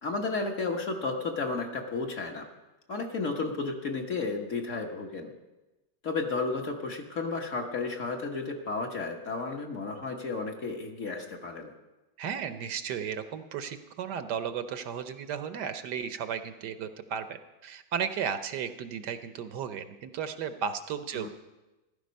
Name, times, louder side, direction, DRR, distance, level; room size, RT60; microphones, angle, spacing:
voice 1, 0.0-2.5 2.9-5.3 6.0-11.7 21.1-21.3, left 3 dB, 45° left, 2 dB, 1.5 m, -33 dB
voice 2, 12.2-21.3, right 7 dB, 70° right, 10 dB, 1.3 m, -34 dB
15.0 x 12.0 x 5.3 m, 1.1 s
omnidirectional pair, 2.0 m